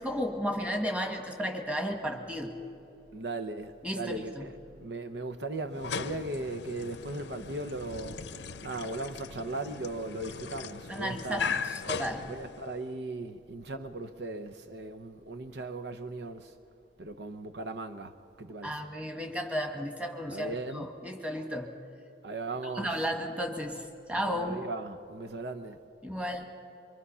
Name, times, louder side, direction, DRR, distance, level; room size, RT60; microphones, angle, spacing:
voice 1, 0.0-2.6 3.8-4.4 10.9-12.3 18.6-21.7 22.7-24.6 26.0-26.5, equal, 5° right, 1.7 m, -34 dB
voice 2, 3.1-8.2 8.6-11.6 12.3-16.5 17.0-18.7 20.3-20.9 22.2-22.9 24.2-25.8, right 2 dB, 65° right, 0.8 m, -38 dB
sound 1, 5.7-12.9, left 5 dB, 70° left, 0.7 m, -38 dB
25.0 x 24.0 x 5.6 m
head